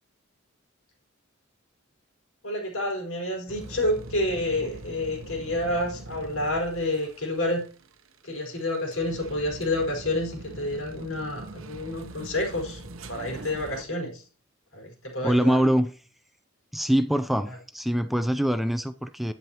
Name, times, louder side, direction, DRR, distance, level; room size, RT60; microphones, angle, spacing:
voice 1, 2.4-7.6 8.2-12.8 13.1-14.2 14.7-15.6 17.5-17.6, left 1 dB, 70° left, 4.7 m, -29 dB
sound 1, 3.5-13.8, right 1 dB, 70° right, 0.8 m, -43 dB
voice 2, 15.2-15.9 16.7-19.3, equal, ahead, 0.4 m, -24 dB
11.0 x 9.5 x 2.9 m
head